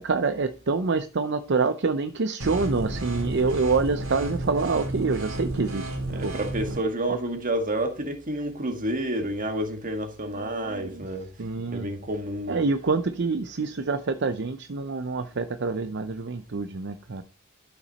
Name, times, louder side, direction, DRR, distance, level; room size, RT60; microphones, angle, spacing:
voice 1, 0.0-6.3 10.3-11.0 11.4-11.9 12.5-17.2, right 4 dB, 55° right, 0.7 m, -26 dB
sound 1, 2.4-6.8, right 1 dB, 70° right, 2.7 m, -32 dB
voice 2, 6.1-11.3 11.7-12.6, right 1 dB, 40° right, 1.8 m, -29 dB
12.5 x 6.0 x 4.1 m
head